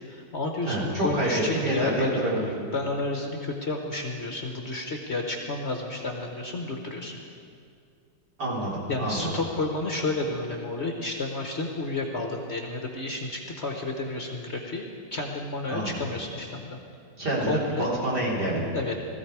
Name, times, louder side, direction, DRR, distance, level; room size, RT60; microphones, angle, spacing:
voice 1, 0.1-2.2 2.7-7.2 8.9-16.8 17.4-18.0 18.7-18.9, left 2 dB, 45° left, 2 dB, 1.2 m, -31 dB
voice 2, 0.7-2.7 8.4-9.4 15.7-16.0 17.2-18.8, right 1 dB, 65° right, -6 dB, 4.2 m, -27 dB
16.5 x 14.5 x 4.7 m, 2.3 s
omnidirectional pair, 1.9 m